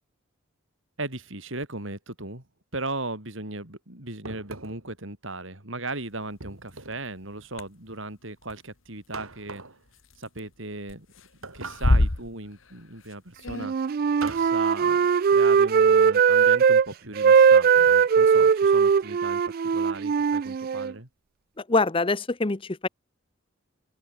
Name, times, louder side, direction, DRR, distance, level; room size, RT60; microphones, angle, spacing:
voice 1, 1.0-2.4 2.7-9.6 10.2-11.1 11.4-13.7 14.2-19.4 19.7-21.1, right 2 dB, 65° right, 5.0 m, -37 dB
sound 1, 4.2-4.9 6.4-7.1 9.1-9.8 11.4-12.2 14.2-14.6, right 3 dB, 85° right, 5.0 m, -41 dB
sound 2, 6.7-6.8 7.6-7.7 8.4-8.5 10.0-10.5 10.8-11.3 11.5-12.8 13.1-13.2 13.4-13.7, left 1 dB, 70° left, 1.8 m, -24 dB
Wind instrument woodwind instrument, 13.6-16.9 17.2-20.9, right 6 dB, 45° right, 0.3 m, -19 dB
voice 2, 21.7-22.9, left 3 dB, 25° left, 0.7 m, -24 dB
open air
head